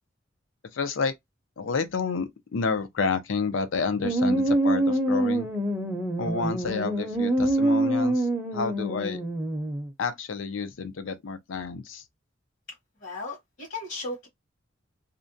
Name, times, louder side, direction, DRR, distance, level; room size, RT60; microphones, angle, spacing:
voice 1, 0.7-1.1 1.6-5.5 6.2-9.2 10.0-12.0, left 4 dB, 75° left, 0.5 m, -30 dB
sound 1, 4.0-9.9, right 1 dB, 10° right, 0.6 m, -25 dB
voice 2, 13.0-14.3, left 2 dB, 60° left, 1.1 m, -36 dB
2.5 x 2.1 x 2.6 m
head